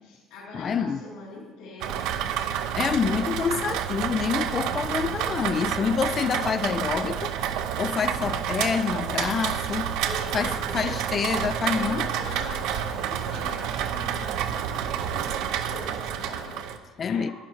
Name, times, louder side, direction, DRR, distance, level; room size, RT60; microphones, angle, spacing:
voice 1, 0.0-2.2 10.0-11.4 11.7-17.3, left 3 dB, 75° left, 3.8 m, -42 dB
voice 2, 0.5-1.1 2.8-7.4 7.8-10.0 10.3-12.1 17.0-17.3, left 6 dB, 30° left, 0.3 m, -27 dB
Rain, 1.8-16.8, right 9 dB, 70° right, 0.7 m, -29 dB
11.0 x 10.5 x 4.6 m
cardioid pair, 160°, 0 cm